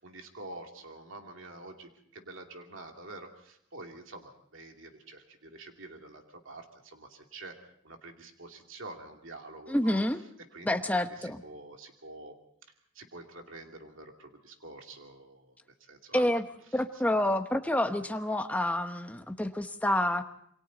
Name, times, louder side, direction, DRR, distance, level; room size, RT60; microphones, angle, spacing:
voice 1, 0.0-7.6 7.8-10.0 10.5-12.3 12.9-15.5 15.8-16.4, right 2 dB, 70° right, 3 dB, 2.7 m, -47 dB
voice 2, 9.7-10.2 10.6-11.4 16.1-16.4 16.7-20.2, left 1 dB, 5° left, 7 dB, 1.0 m, -28 dB
27.5 x 23.5 x 4.0 m, 0.70 s
head